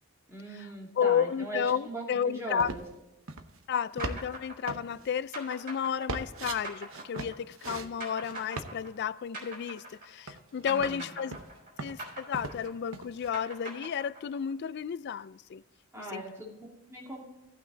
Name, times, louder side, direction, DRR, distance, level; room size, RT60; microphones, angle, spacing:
voice 1, 0.3-2.8 10.6-11.1 15.9-17.2, right 2 dB, 10° right, 2.6 m, -40 dB
voice 2, 1.0-2.7 3.7-11.4 11.8-15.6 16.0-16.2, left 7 dB, 50° left, 0.3 m, -32 dB
sound 1, 2.6-3.0 3.3-3.6 4.0-4.4 4.7-5.1 6.1-6.6 6.9-7.9 8.2-8.7 9.9-10.0 10.3-11.0 11.3-12.7 12.9-13.3, right 3 dB, 65° right, 0.9 m, -38 dB
sound 2, 4.0-10.4 10.7-14.5, right 1 dB, 40° right, 3.9 m, -43 dB
16.5 x 5.9 x 3.9 m
head